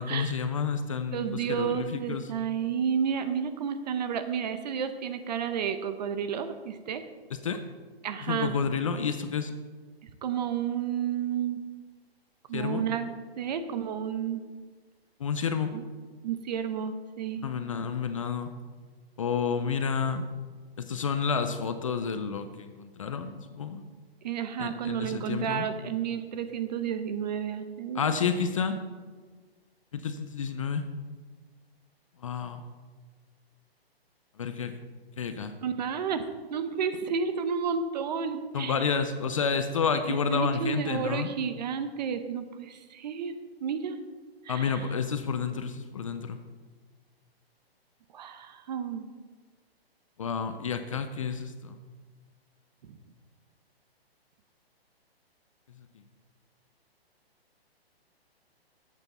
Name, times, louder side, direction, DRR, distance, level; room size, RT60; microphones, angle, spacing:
voice 1, 0.0-2.3 7.3-7.6 8.2-9.5 12.5-12.8 15.2-15.7 17.4-18.5 19.2-20.3 20.8-23.8 24.6-25.7 27.9-28.8 29.9-30.9 32.2-32.6 34.4-34.8 35.2-35.5 38.5-41.3 44.5-46.4 50.2-51.8 55.8-56.0, left 6 dB, 35° left, 9 dB, 0.4 m, -30 dB
voice 2, 1.1-7.0 8.0-8.6 10.0-11.6 12.5-13.1 13.4-14.4 15.7-15.8 16.2-17.4 24.2-28.2 35.6-38.9 39.9-43.3 43.6-44.0 44.4-44.9 48.1-49.0 52.9-53.0, right 7 dB, 45° right, 10 dB, 0.7 m, -31 dB
10.5 x 8.3 x 4.1 m, 1.4 s
hypercardioid pair, 160°, 31 cm